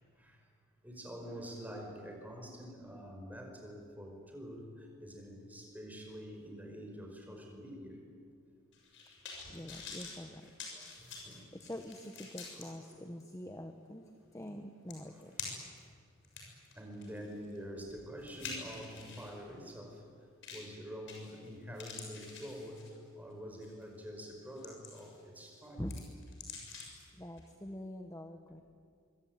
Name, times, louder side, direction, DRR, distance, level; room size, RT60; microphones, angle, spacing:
voice 1, 0.8-8.0 10.4-11.7 14.9-15.6 16.5-20.0 20.5-25.9 26.5-26.6, equal, 10° right, 2 dB, 5.1 m, -47 dB
sound 1, 8.7-12.6 13.2-13.3 14.5-14.6 14.9-15.8 16.2-19.3 20.4-20.7 21.1-21.5 21.7-23.1 23.6-23.8 24.3-25.2 25.5-27.0 27.4-27.5, left 5 dB, 60° left, 7.1 m, -47 dB
voice 2, 9.5-10.5 11.5-15.7 25.8-26.0 27.1-28.6, left 1 dB, 15° left, 5 dB, 1.1 m, -45 dB
25.0 x 24.0 x 9.5 m, 2.2 s
head